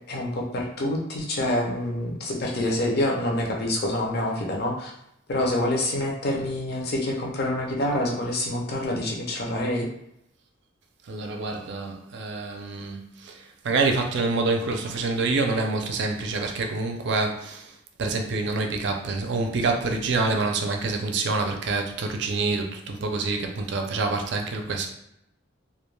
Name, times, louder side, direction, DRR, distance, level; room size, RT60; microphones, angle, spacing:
voice 1, 0.1-4.9 5.3-9.9, left 1 dB, 55° left, -1 dB, 0.6 m, -26 dB
voice 2, 11.1-17.7 18.0-24.9, right 3 dB, 60° right, 4 dB, 0.4 m, -27 dB
2.3 x 2.2 x 3.1 m, 0.79 s
head